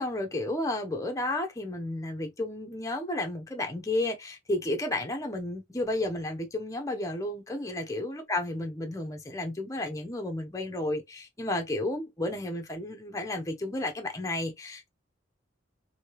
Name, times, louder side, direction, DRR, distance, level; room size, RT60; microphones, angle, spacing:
voice 1, 0.0-14.9, left 1 dB, 15° left, 0.7 m, -32 dB
3.2 x 2.7 x 3.0 m
head